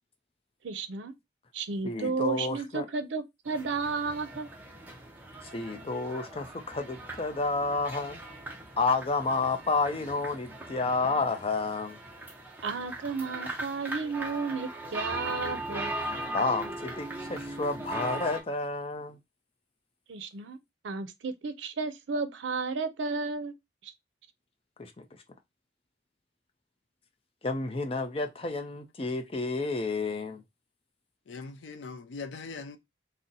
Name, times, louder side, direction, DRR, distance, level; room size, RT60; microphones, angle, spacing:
voice 1, 0.6-1.1 1.5-4.5 12.6-15.9 20.1-20.6 20.8-23.5 23.8-23.9, right 4 dB, 90° right, 0.5 m, -33 dB
voice 2, 1.8-2.9 5.5-8.2 8.8-12.0 16.3-19.2 24.8-25.1 27.4-30.4, left 3 dB, 30° left, 0.5 m, -30 dB
sound 1, 3.4-18.4, right 2 dB, 10° right, 0.6 m, -39 dB
voice 3, 31.3-32.8, left 4 dB, 80° left, 0.5 m, -41 dB
2.8 x 2.0 x 3.8 m
head